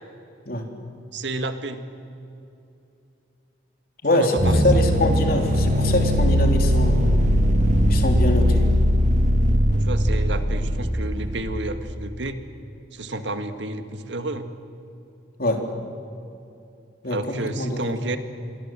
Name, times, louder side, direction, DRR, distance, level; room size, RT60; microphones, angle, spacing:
voice 1, 1.1-1.8 4.1-4.6 9.8-12.4 12.9-14.5 17.1-18.2, right 2 dB, 70° right, 8 dB, 1.8 m, -30 dB
voice 2, 4.0-7.1 7.9-8.7 15.4-15.6 17.0-17.2 17.6-17.8, left 1 dB, 50° left, 3 dB, 3.4 m, -23 dB
sound 1, 4.4-11.6, equal, 40° right, 1.7 m, -20 dB
28.0 x 22.5 x 7.6 m, 2.7 s
head